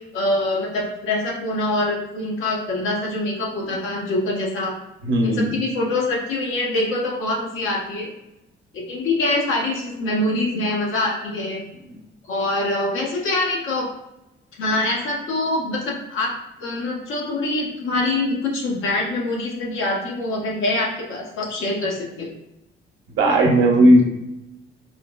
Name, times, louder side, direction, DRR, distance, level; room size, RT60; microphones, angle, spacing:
voice 1, 0.1-4.8 5.2-8.1 8.7-11.6 12.3-13.9 14.6-16.3 16.6-22.3, left 2 dB, 85° left, -2 dB, 0.9 m, -24 dB
voice 2, 5.0-5.5 11.9-12.0 23.1-24.0, right 1 dB, 75° right, 1 dB, 0.7 m, -15 dB
4.2 x 2.0 x 2.2 m, 0.91 s
cardioid pair, 90°, 20 cm